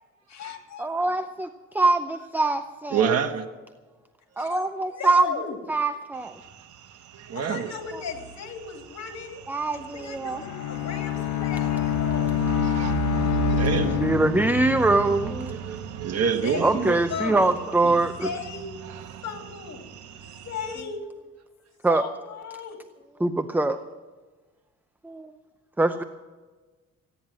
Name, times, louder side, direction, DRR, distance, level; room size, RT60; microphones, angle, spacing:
voice 1, 0.3-1.1 4.4-5.6 7.3-9.4 9.7-12.3 16.4-16.8 17.1-17.6 18.2-18.7 19.2-19.8 20.2-21.1 21.9-22.8, left 6 dB, 60° left, 4 dB, 2.9 m, -36 dB
voice 2, 0.8-3.1 4.4-5.3 5.7-6.4 7.9-8.0 9.5-10.4 13.9-15.5 16.6-18.3 21.8-22.0 23.2-23.8 25.0-25.3 25.8-26.0, right 2 dB, 5° right, 9 dB, 0.6 m, -23 dB
voice 3, 2.9-3.4 7.1-7.7 12.6-12.9 13.2-14.0 15.5-17.0, right 7 dB, 55° right, 5 dB, 1.5 m, -27 dB
sound 1, 6.2-20.8, right 8 dB, 75° right, 1.2 m, -35 dB
Bowed string instrument, 10.2-14.9, left 14 dB, 85° left, 0.7 m, -27 dB
15.5 x 10.0 x 7.4 m, 1.3 s
cardioid pair, 90°, 30 cm